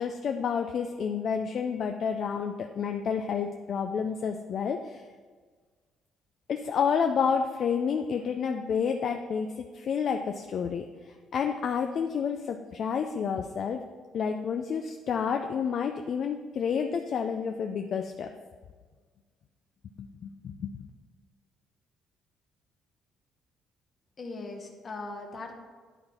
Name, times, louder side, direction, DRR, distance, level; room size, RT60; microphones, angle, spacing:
voice 1, 0.0-5.0 6.5-13.8 14.1-18.3 20.0-20.7, left 6 dB, 45° left, 5 dB, 0.3 m, -30 dB
voice 2, 24.2-25.5, left 3 dB, 25° left, 2 dB, 1.0 m, -39 dB
11.0 x 3.9 x 4.3 m, 1.5 s
cardioid pair, 160°, 0 cm